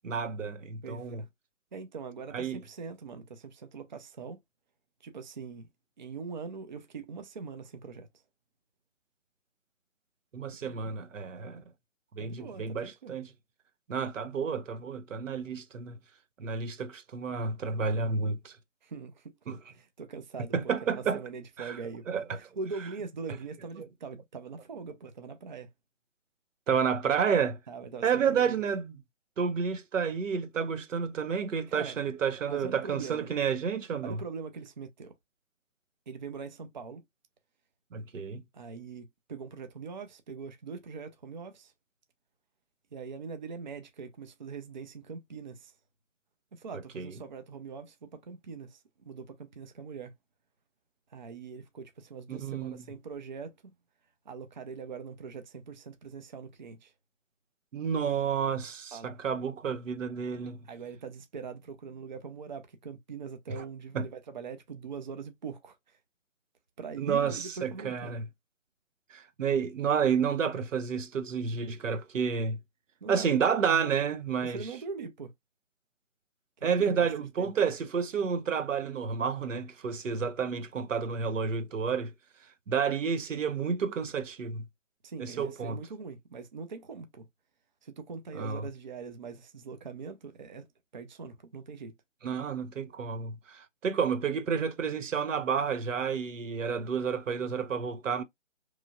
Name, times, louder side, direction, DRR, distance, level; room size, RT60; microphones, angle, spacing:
voice 1, 0.0-1.2 2.3-2.6 10.3-11.6 12.2-13.3 13.9-16.0 16.4-18.5 19.5-19.6 20.5-21.2 21.6-21.8 22.1-22.4 26.7-27.6 28.0-28.9 29.4-34.2 37.9-38.4 47.0-47.1 52.3-52.8 57.7-60.6 63.9-64.1 67.0-68.3 69.1-72.6 73.1-74.6 76.6-82.1 82.7-84.6 85.2-85.8 88.3-88.6 92.2-98.2, right 6 dB, 85° right, 0.6 m, -30 dB
voice 2, 0.8-1.3 1.7-4.4 5.0-5.7 6.0-8.1 10.6-10.9 12.2-13.1 18.8-25.7 27.7-28.6 31.7-32.0 32.4-33.3 34.0-35.1 36.1-37.0 38.5-41.7 42.9-45.7 46.5-50.1 51.1-53.7 54.3-56.9 58.9-59.1 60.6-66.0 66.8-68.2 73.0-73.4 74.4-75.3 76.6-77.1 77.4-77.5 85.0-87.3 87.8-90.7 90.9-91.9, right 5 dB, 40° right, 0.4 m, -42 dB
3.0 x 2.4 x 2.2 m
figure-of-eight pair, 150°, 37 cm